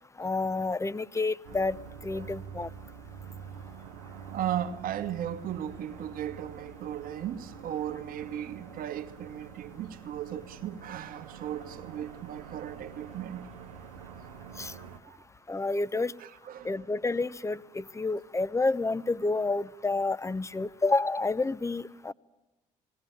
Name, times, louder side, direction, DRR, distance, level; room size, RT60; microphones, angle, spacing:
voice 1, 0.2-1.8 2.0-2.7 14.6-14.7 15.5-16.1 16.6-22.1, left 3 dB, 15° left, 0.8 m, -29 dB
sound 1, 1.4-15.0, right 7 dB, 90° right, 1.2 m, -46 dB
voice 2, 4.3-13.5 15.0-15.2 16.2-16.8, right 10 dB, 60° right, 1.4 m, -36 dB
21.0 x 17.5 x 9.0 m
hypercardioid pair, 55°, 17 cm